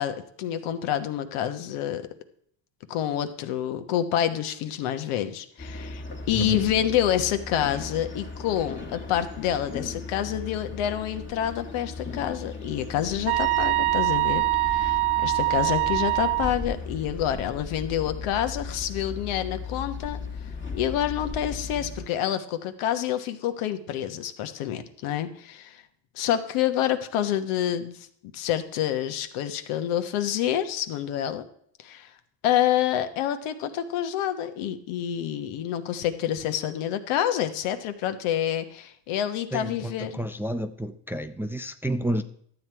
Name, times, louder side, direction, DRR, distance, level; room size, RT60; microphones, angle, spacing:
voice 1, 0.0-2.0 2.9-14.4 14.7-20.2 20.7-25.8 26.1-28.0 28.3-31.4 31.8-32.1 32.4-40.2, left 11 dB, 80° left, 9 dB, 1.2 m, -28 dB
sound 1, 5.6-22.1, left 4 dB, 25° left, 1.5 m, -37 dB
voice 2, 6.3-6.7 39.5-42.2, right 1 dB, 5° right, 8 dB, 0.5 m, -30 dB
sound 2, 13.3-16.5, right 21 dB, 75° right, 0.6 m, -24 dB
12.0 x 8.0 x 4.6 m, 0.66 s
cardioid pair, 95°, 49 cm